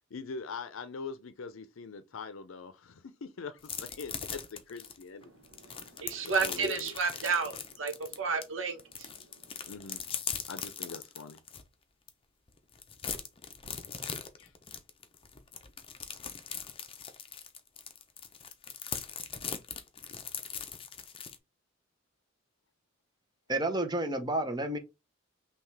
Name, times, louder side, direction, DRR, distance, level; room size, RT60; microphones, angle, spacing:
voice 1, 0.1-5.3 6.2-6.9 9.7-10.0 10.5-11.4 14.4-14.5, left 4 dB, 85° left, 0.6 m, -42 dB
sound 1, 3.6-8.4 8.8-11.6 12.1-12.2 12.5-21.4, left 7 dB, 30° left, 0.6 m, -40 dB
voice 2, 5.3-9.1, right 4 dB, 70° right, 1.1 m, -32 dB
voice 3, 23.5-24.8, right 1 dB, 20° right, 0.8 m, -30 dB
5.7 x 2.4 x 3.2 m
head